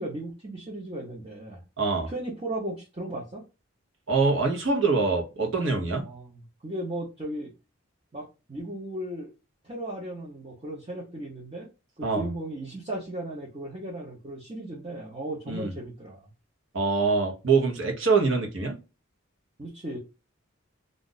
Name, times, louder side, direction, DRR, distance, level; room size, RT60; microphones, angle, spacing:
voice 1, 0.0-1.6 2.1-3.4 6.0-7.5 8.1-9.3 9.6-11.7 12.0-16.3 19.6-20.0, right 1 dB, 30° right, 0.8 m, -36 dB
voice 2, 1.8-2.1 4.1-6.0 12.0-12.3 15.5-15.7 16.7-18.8, right 4 dB, 70° right, 1.0 m, -24 dB
2.5 x 2.5 x 3.9 m
head